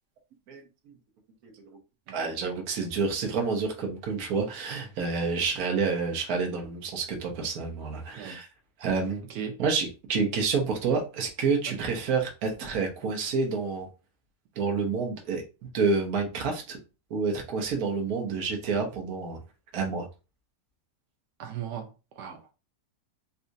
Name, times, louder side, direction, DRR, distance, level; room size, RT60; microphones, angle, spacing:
voice 1, 2.1-8.5 8.8-9.2 9.6-13.9 14.6-16.8 17.1-19.4 19.7-20.1, right 4 dB, 65° right, 1.4 m, -28 dB
voice 2, 21.4-22.5, right 8 dB, 90° right, 1.3 m, -38 dB
4.1 x 2.4 x 2.6 m
omnidirectional pair, 1.8 m